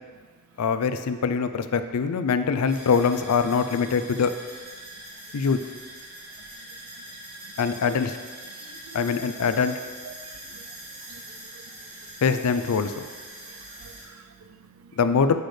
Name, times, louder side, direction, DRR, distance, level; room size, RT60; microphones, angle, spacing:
voice 1, 0.6-4.3 5.3-5.6 7.6-8.2 8.9-9.8 12.2-13.0 15.0-15.4, left 5 dB, 85° left, 10 dB, 0.4 m, -23 dB
sound 1, 2.7-14.0, right 1 dB, 45° right, 2.1 m, -43 dB
voice 2, 8.6-9.2 10.0-10.1 10.5-10.7 11.1-11.5 13.5-14.9, right 6 dB, 65° right, 8 dB, 0.5 m, -49 dB
8.1 x 6.3 x 3.2 m, 1.6 s
head